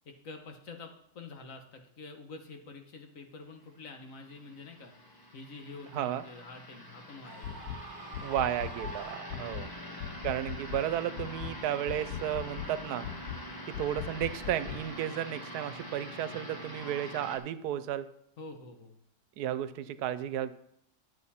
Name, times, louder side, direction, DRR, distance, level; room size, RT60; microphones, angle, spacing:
voice 1, 0.0-4.9 5.3-7.7 9.3-9.7 18.4-18.9, left 3 dB, 60° left, 4 dB, 1.5 m, -47 dB
sound 1, 3.9-17.4, left 1 dB, 20° left, 0.8 m, -45 dB
voice 2, 5.9-6.2 8.2-9.7 10.2-13.1 13.7-18.1 19.4-20.5, right 11 dB, 90° right, 13 dB, 1.1 m, -33 dB
Screaming, 7.2-9.9, right 4 dB, 60° right, 1.9 m, -46 dB
sound 2, 7.4-7.8 8.1-9.0 9.3-9.7 10.0-10.9 11.2-11.6 11.9-12.7 13.0-13.4 13.7-14.8, left 10 dB, 85° left, 1.2 m, -40 dB
10.5 x 7.2 x 4.2 m, 0.72 s
omnidirectional pair, 1.6 m